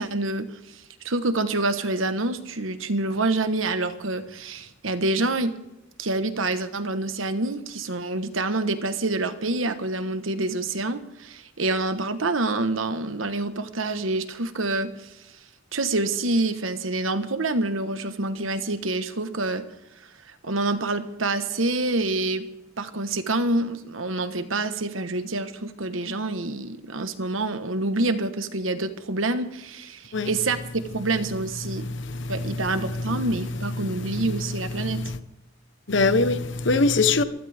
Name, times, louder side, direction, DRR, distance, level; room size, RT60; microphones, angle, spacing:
voice 1, 0.0-5.5 6.0-15.2 15.7-19.6 20.3-22.5 22.8-31.9 32.3-35.0, right 2 dB, 85° right, 1.4 m, -27 dB
voice 2, 31.7-32.6 32.9-33.1 34.0-34.2 34.8-35.2 35.9-37.2, left 3 dB, 65° left, 1.2 m, -23 dB
23.5 x 15.5 x 3.6 m
head